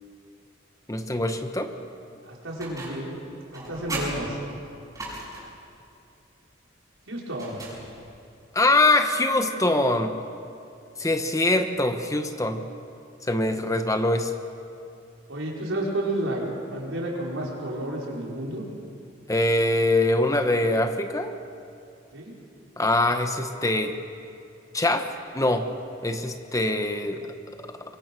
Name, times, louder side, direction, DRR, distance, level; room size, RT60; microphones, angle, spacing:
voice 1, 0.9-1.7 8.5-10.1 11.0-12.6 13.2-14.3 19.3-21.3 22.8-23.9 24.7-25.1 25.3-25.7 26.0-27.3 27.6-27.7, left 2 dB, 15° left, 7 dB, 1.1 m, -23 dB
voice 2, 2.2-3.2 3.5-4.4 7.1-7.6 15.3-16.4 16.7-18.7 22.1-22.3, right 1 dB, 85° right, -3 dB, 4.9 m, -31 dB
sound 1, 2.6-3.1 3.5-5.6 7.3-8.2, right 2 dB, 15° right, 6.6 m, -37 dB
24.0 x 23.5 x 6.2 m, 2.5 s
head